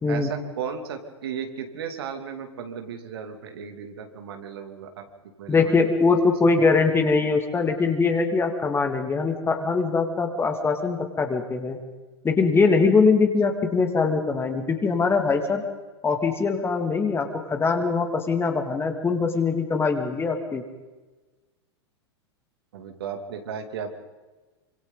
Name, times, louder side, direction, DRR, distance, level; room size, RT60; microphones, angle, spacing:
voice 1, 0.1-5.1 5.4-5.9 22.7-24.0, right 7 dB, 60° right, 4 dB, 2.9 m, -35 dB
voice 2, 5.5-11.8 12.2-15.6 16.0-20.6, left 4 dB, 15° left, 5 dB, 2.6 m, -22 dB
27.5 x 25.5 x 4.1 m, 1.2 s
figure-of-eight pair, 95°, 14 cm